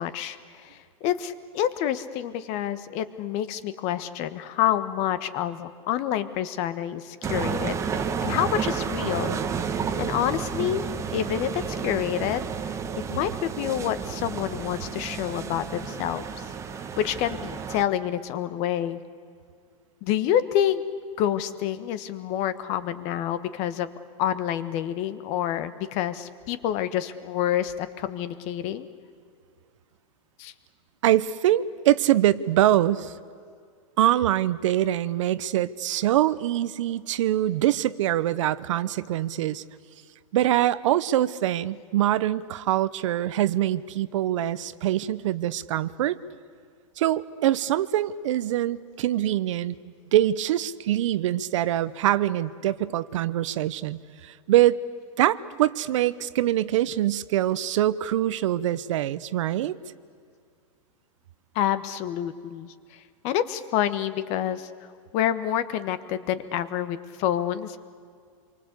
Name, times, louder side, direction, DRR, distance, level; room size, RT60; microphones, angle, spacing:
voice 1, 0.0-9.4 10.0-12.8 13.1-16.4 17.0-19.0 20.0-20.8 21.2-23.9 24.2-28.9 30.4-30.5 61.5-64.7 65.1-67.8, left 11 dB, 40° left, 13 dB, 1.4 m, -28 dB
sound 1, 7.2-17.8, right 6 dB, 15° right, 1.2 m, -31 dB
voice 2, 31.0-33.1 34.0-39.6 40.3-46.2 47.0-49.8 50.1-54.8 55.2-59.8, right 13 dB, 65° right, 16 dB, 0.9 m, -24 dB
27.0 x 23.5 x 8.3 m, 2.2 s
hypercardioid pair, 145°, 17 cm